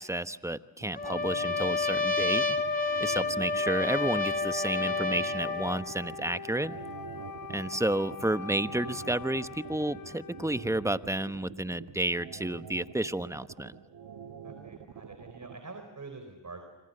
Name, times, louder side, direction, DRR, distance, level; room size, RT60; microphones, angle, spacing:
voice 1, 0.0-2.6 3.0-6.8 7.5-13.7, right 1 dB, 5° right, 12 dB, 1.1 m, -31 dB
sound 1, 0.8-15.5, right 8 dB, 85° right, 1.7 m, -46 dB
Trumpet, 0.9-5.8, left 3 dB, 20° left, 2.7 m, -29 dB
Wind instrument woodwind instrument, 3.5-11.3, left 5 dB, 60° left, 2.2 m, -43 dB
voice 2, 14.4-16.6, right 3 dB, 45° right, 6 dB, 4.1 m, -46 dB
27.5 x 25.5 x 6.8 m, 1.0 s
cardioid pair, 45°, 41 cm